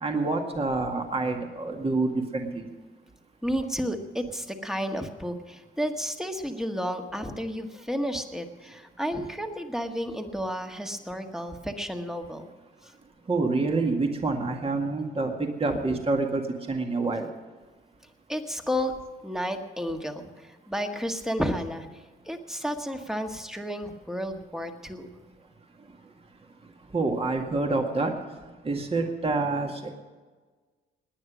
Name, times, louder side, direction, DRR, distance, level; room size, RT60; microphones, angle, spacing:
voice 1, 0.0-2.7 13.3-17.3 26.9-28.1 28.6-29.9, right 3 dB, 30° right, 3 dB, 2.0 m, -27 dB
voice 2, 3.4-12.5 12.8-12.9 15.7-15.8 18.3-18.9 19.2-21.9 22.2-25.1, equal, ahead, 5 dB, 1.6 m, -32 dB
18.5 x 9.9 x 6.2 m, 1.4 s
cardioid pair, 90°, 20 cm